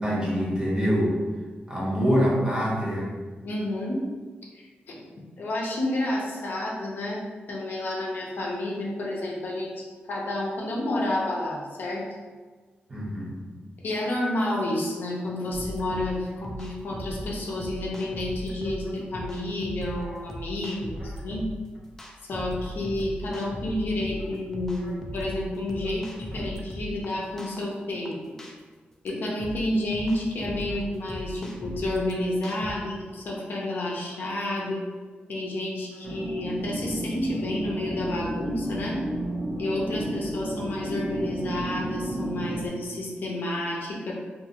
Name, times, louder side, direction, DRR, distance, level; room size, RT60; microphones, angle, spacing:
voice 1, 0.0-1.2 1.7-3.1 12.9-13.3 19.2-19.3 20.0-20.1 21.0-21.2 23.3-23.5 24.8-24.9 32.7-32.8, equal, 20° right, -5 dB, 0.7 m, -26 dB
voice 2, 3.4-4.0 4.5-5.0 5.4-7.2 7.5-12.0 13.8-21.4 22.3-28.2 29.0-34.8 35.3-39.0 39.6-44.1, left 1 dB, 65° left, -2 dB, 0.5 m, -30 dB
sound 1, 15.5-32.7, equal, 15° left, 0.3 m, -38 dB
sound 2, 36.0-42.7, right 1 dB, 75° right, 0.6 m, -32 dB
2.6 x 2.4 x 2.8 m, 1.4 s
wide cardioid pair, 130°, 4 cm